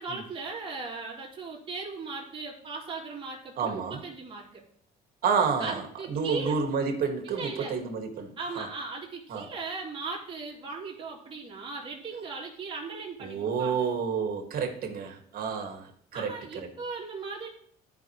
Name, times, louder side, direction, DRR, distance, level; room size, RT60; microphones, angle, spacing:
voice 1, 0.0-4.6 5.6-6.6 7.2-7.7 8.4-13.9 16.1-17.5, right 4 dB, 30° right, 3.1 m, -38 dB
voice 2, 3.6-4.0 5.2-8.7 9.3-9.5 13.2-16.7, right 6 dB, 60° right, 1.9 m, -30 dB
13.0 x 5.6 x 3.2 m
cardioid pair, 110°, 17 cm